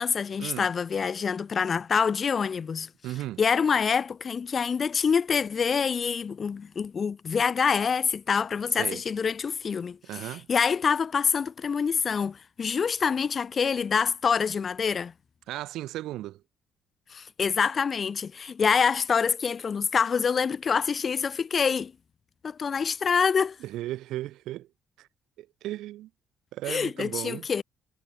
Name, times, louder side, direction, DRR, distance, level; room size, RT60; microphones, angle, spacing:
voice 1, 0.0-2.9 3.4-15.1 17.1-21.9 22.4-23.6 26.7-27.6, left 6 dB, 30° left, 0.5 m, -26 dB
voice 2, 3.0-3.4 8.8-9.0 10.0-10.5 15.5-16.4 23.6-24.7 25.0-25.1 25.4-26.1 26.5-27.5, right 15 dB, 75° right, 3.8 m, -35 dB
cardioid pair, 145°, 0 cm